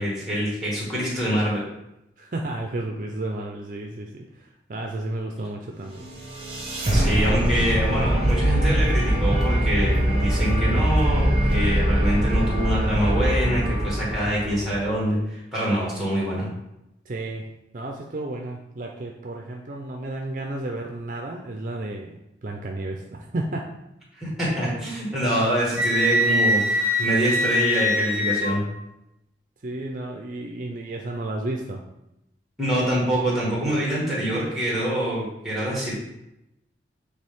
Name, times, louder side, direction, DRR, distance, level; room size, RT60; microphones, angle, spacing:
voice 1, 0.0-1.6 6.9-16.5 24.2-28.6 32.6-35.9, right 1 dB, ahead, -5 dB, 2.1 m, -25 dB
voice 2, 2.2-6.1 17.1-17.5 17.7-23.7 29.6-31.8, right 2 dB, 45° right, 1 dB, 0.5 m, -32 dB
sound 1, 5.8-15.0, equal, 30° right, 1.5 m, -22 dB
Wind instrument woodwind instrument, 25.7-28.6, left 1 dB, 50° left, 1.6 m, -23 dB
7.9 x 3.3 x 3.5 m, 0.87 s
head